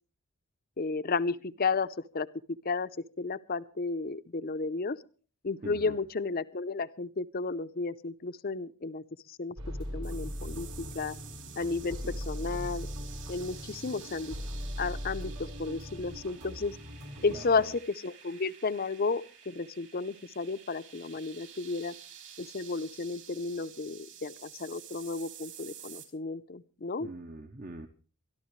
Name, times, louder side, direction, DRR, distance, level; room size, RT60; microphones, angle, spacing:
voice 1, 0.8-2.3 2.6-2.9 3.2-5.0 5.4-9.6 9.9-11.1 11.6-12.9 13.3-14.4 14.8-16.8 17.2-21.9 22.4-27.1, left 4 dB, 40° left, 13 dB, 0.6 m, -33 dB
voice 2, 5.6-6.0 11.9-12.2 17.3-17.7 27.0-27.9, right 2 dB, 40° right, 7 dB, 0.8 m, -43 dB
sound 1, 9.6-17.5, equal, 80° right, 4.7 m, -39 dB
sound 2, 10.0-26.1, right 9 dB, 55° right, 3.7 m, -50 dB
24.0 x 12.5 x 3.2 m, 0.37 s
head